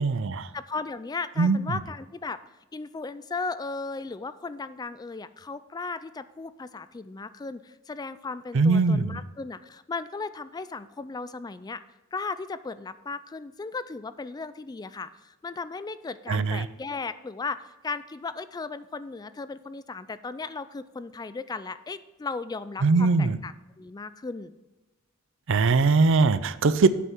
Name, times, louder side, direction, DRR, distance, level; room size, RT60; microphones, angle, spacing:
voice 1, 0.0-0.5 1.4-1.8 8.5-9.2 16.3-16.7 22.8-23.4 25.5-26.9, right 4 dB, 65° right, 14 dB, 0.5 m, -21 dB
voice 2, 0.5-2.4 2.7-11.8 12.1-24.5, left 4 dB, 20° left, 14 dB, 0.3 m, -36 dB
8.3 x 5.7 x 6.0 m, 1.1 s
head